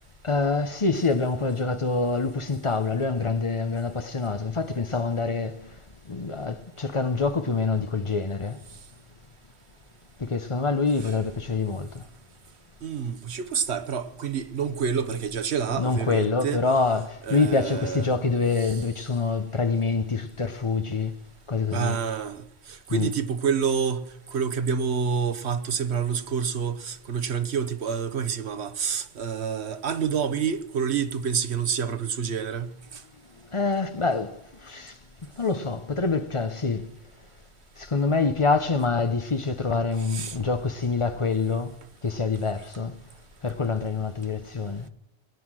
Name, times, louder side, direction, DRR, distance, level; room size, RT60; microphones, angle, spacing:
voice 1, 0.2-5.7 6.1-8.6 10.2-12.0 15.8-21.2 21.5-22.0 22.9-23.1 33.5-34.9 35.4-36.9 37.8-41.8 42.0-43.0 43.4-44.9, left 4 dB, 30° left, 0.8 m, -26 dB
voice 2, 12.8-16.6 17.3-18.1 18.6-18.7 21.7-22.4 22.9-32.7 40.1-40.4, right 6 dB, 80° right, 1.3 m, -28 dB
20.5 x 9.4 x 6.2 m
omnidirectional pair, 1.1 m